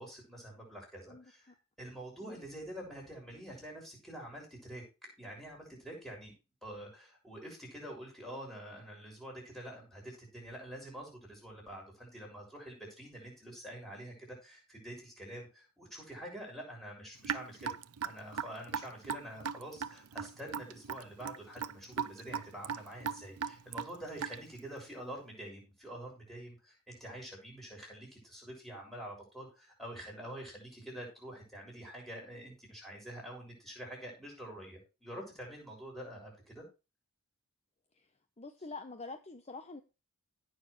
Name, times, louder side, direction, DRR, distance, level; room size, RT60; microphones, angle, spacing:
voice 1, 0.0-1.5 1.8-6.3 6.6-17.7 18.0-36.7, right 1 dB, ahead, 6.7 m, -47 dB
Raindrop / Drip, 17.2-24.6, right 7 dB, 85° right, 0.6 m, -38 dB
voice 2, 38.4-39.8, left 3 dB, 30° left, 0.9 m, -46 dB
17.0 x 6.6 x 3.2 m
head